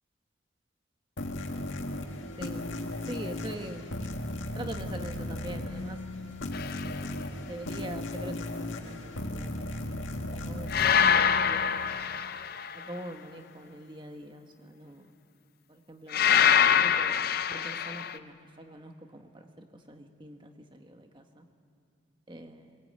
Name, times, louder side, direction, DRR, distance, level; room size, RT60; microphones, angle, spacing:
sound 1, 1.2-12.3, left 1 dB, 75° left, 1.9 m, -36 dB
voice 1, 2.4-2.7 3.1-3.9 4.5-6.0 6.8-7.1 7.4-9.9 10.3-12.1 12.7-15.1 15.7-21.4 22.3-22.8, right 1 dB, 25° right, 5 dB, 1.4 m, -44 dB
sound 2, 6.5-6.9 10.7-12.9 16.1-18.2, left 8 dB, 50° left, 0.5 m, -24 dB
22.0 x 20.0 x 8.8 m, 2.5 s
head